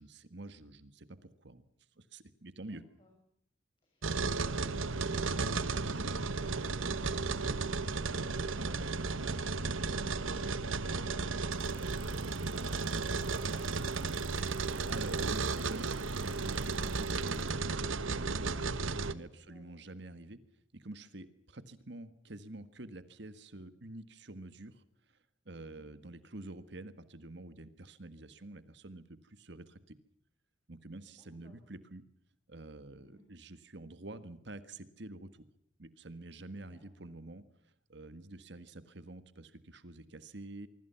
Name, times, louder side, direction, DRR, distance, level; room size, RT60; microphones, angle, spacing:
voice 1, 0.0-1.6 2.0-2.8 14.9-20.4 20.7-25.2 25.4-30.0 30.7-32.0 32.5-35.3 35.8-40.7, right 2 dB, 55° right, 12 dB, 1.6 m, -48 dB
voice 2, 2.7-3.1 19.5-19.6 25.6-25.9 31.2-31.6 33.0-33.2 36.7-37.2, equal, 25° left, 1 dB, 6.4 m, -61 dB
sound 1, 4.0-19.1, right 4 dB, 80° right, 1.3 m, -34 dB
sound 2, 11.5-17.5, right 8 dB, 25° right, 5.4 m, -53 dB
25.0 x 24.5 x 5.8 m, 0.68 s
head